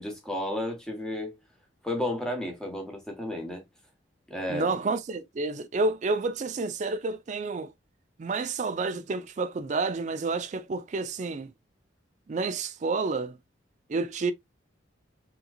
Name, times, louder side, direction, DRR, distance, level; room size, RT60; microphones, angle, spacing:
voice 1, 0.0-1.3 1.8-3.6 4.3-4.7, left 1 dB, 5° left, 1.0 m, -32 dB
voice 2, 4.5-7.7 8.2-11.5 12.3-13.4 13.9-14.3, right 3 dB, 35° right, 0.3 m, -29 dB
3.7 x 2.9 x 2.2 m
head